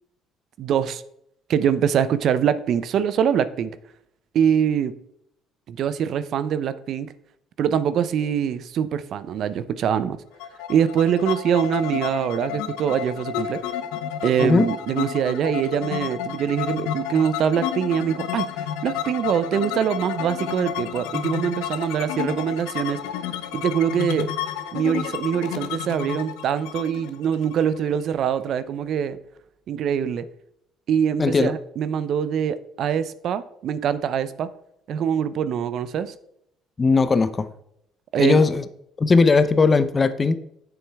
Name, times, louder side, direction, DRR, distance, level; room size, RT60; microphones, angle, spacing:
voice 1, 0.6-1.0 1.5-3.7 4.3-4.9 5.7-7.1 7.6-10.2 10.7-13.6 14.2-18.5 18.8-23.0 23.5-24.3 24.7-29.2 29.7-30.2 30.9-34.5 34.9-36.1 38.1-38.4, right 8 dB, 60° right, 14 dB, 0.6 m, -23 dB
sound 1, 10.4-28.1, left 9 dB, 90° left, 0.7 m, -31 dB
voice 2, 31.2-31.5 36.8-37.5 38.2-38.6 39.0-40.4, left 4 dB, 30° left, 12 dB, 0.7 m, -18 dB
8.9 x 7.1 x 3.5 m, 0.75 s
cardioid pair, 95°, 0 cm